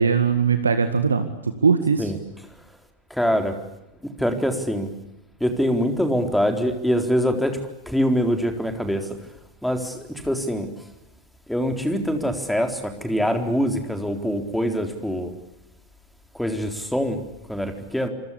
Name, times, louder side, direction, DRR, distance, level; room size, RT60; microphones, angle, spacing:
voice 1, 0.0-2.1, right 5 dB, 75° right, 9 dB, 1.8 m, -20 dB
voice 2, 3.1-3.6 4.0-4.9 5.4-7.6 7.9-9.2 9.6-10.7 11.5-15.3 16.3-17.2 17.5-18.1, equal, ahead, 6 dB, 4.0 m, -24 dB
28.0 x 25.0 x 8.4 m, 0.93 s
figure-of-eight pair, 90°, 0 cm